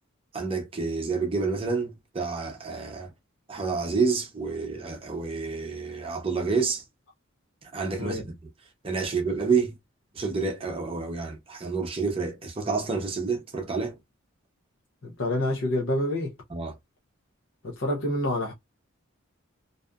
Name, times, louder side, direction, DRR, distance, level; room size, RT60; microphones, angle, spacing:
voice 1, 0.3-3.1 3.5-6.8 7.7-8.3 8.8-9.7 10.1-14.0 16.5-16.7, right 4 dB, 25° right, 0.6 m, -29 dB
voice 2, 15.0-16.3 17.6-18.5, left 1 dB, 60° left, 0.7 m, -27 dB
2.6 x 2.3 x 2.3 m
head